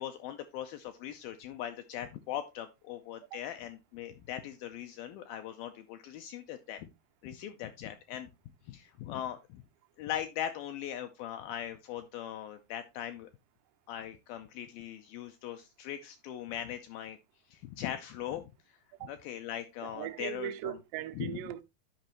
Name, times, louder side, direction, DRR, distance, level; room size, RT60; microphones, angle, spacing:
voice 1, 0.0-6.9 7.2-8.3 8.7-9.6 10.0-13.3 13.9-17.2 17.5-18.5 19.1-20.7 21.2-21.4, left 11 dB, 80° left, 2.1 m, -40 dB
voice 2, 19.8-21.6, right 13 dB, 85° right, 2.7 m, -39 dB
12.0 x 5.1 x 3.0 m
omnidirectional pair, 4.7 m